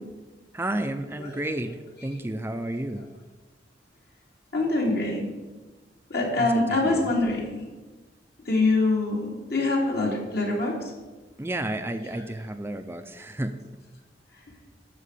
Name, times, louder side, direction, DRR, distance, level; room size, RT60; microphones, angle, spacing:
voice 1, 0.5-3.0 6.4-6.5 6.8-7.1 11.4-13.5, right 1 dB, 15° right, 8 dB, 0.5 m, -31 dB
voice 2, 4.5-5.3 6.1-7.6 8.4-10.8 12.1-12.2, left 2 dB, 65° left, -2 dB, 3.1 m, -25 dB
13.0 x 4.9 x 8.3 m, 1.2 s
head